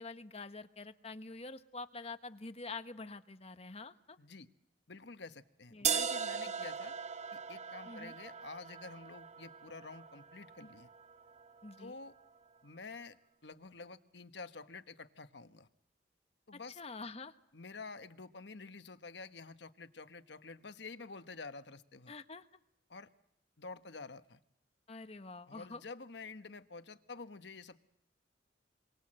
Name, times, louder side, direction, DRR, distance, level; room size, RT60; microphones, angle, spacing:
voice 1, 0.0-4.2 5.7-5.9 7.8-8.1 11.6-11.9 16.8-17.3 22.1-22.5 24.9-25.8, left 3 dB, 35° left, 10 dB, 1.3 m, -46 dB
voice 2, 4.2-4.5 4.9-6.9 7.3-10.9 11.8-12.1 12.6-13.2 13.4-15.7 16.5-16.8 17.5-22.1 22.9-23.1 23.6-24.4 25.5-27.8, left 4 dB, 65° left, 11 dB, 1.3 m, -49 dB
sound 1, 5.8-11.8, right 7 dB, 40° right, 1.0 m, -39 dB
29.0 x 23.5 x 7.7 m, 0.77 s
head